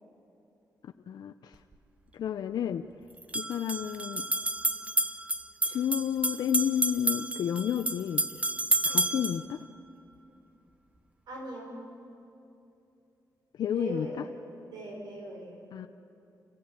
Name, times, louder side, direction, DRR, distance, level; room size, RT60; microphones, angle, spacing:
voice 1, 1.1-1.5 2.1-2.9 3.3-4.3 5.7-8.2 8.8-9.6 13.6-14.1 15.7-15.9, left 9 dB, 75° left, 6 dB, 0.6 m, -31 dB
sound 1, 1.5-1.6 3.2-9.4, right 2 dB, 20° right, 0.8 m, -30 dB
voice 2, 11.3-11.8 13.7-15.6, right 1 dB, 75° right, -1 dB, 5.0 m, -40 dB
29.5 x 15.5 x 8.9 m, 2.8 s
wide cardioid pair, 120°, 7 cm